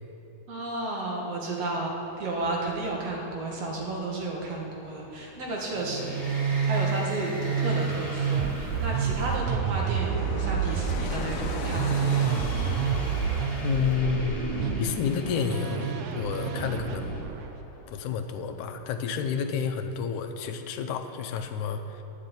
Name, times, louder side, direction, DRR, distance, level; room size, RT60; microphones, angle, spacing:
voice 1, 0.5-12.4, right 2 dB, 60° right, -1 dB, 2.5 m, -33 dB
Fixed-wing aircraft airplane, 2.1-18.9 19.2-19.3, left 4 dB, 70° left, 1.6 m, -42 dB
sound 1, 5.8-10.2 11.7-17.2, equal, 15° left, 2.2 m, -39 dB
Musical instrument, 5.8-17.6, right 7 dB, 85° right, 2.0 m, -29 dB
voice 2, 13.6-14.4 14.8-17.2 17.9-22.0, left 6 dB, 90° left, 6 dB, 2.2 m, -30 dB
10.5 x 6.7 x 8.8 m, 2.9 s
omnidirectional pair, 3.4 m